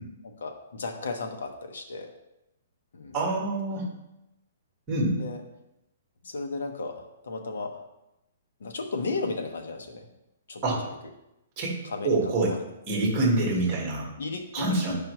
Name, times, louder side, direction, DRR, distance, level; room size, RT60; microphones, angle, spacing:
voice 1, 0.4-2.1 2.9-3.2 5.1-5.4 6.2-7.8 8.6-10.1 10.5-11.1 11.8-12.7 13.5-13.7 14.2-14.9, left 3 dB, 80° left, 4 dB, 1.0 m, -35 dB
voice 2, 3.1-3.9 4.9-5.2 10.6-10.8 11.6-11.7 12.0-12.5 12.9-14.1 14.5-14.9, right 2 dB, 15° right, -2 dB, 1.5 m, -25 dB
8.4 x 5.4 x 3.1 m, 0.90 s
hypercardioid pair, 180°, 0 cm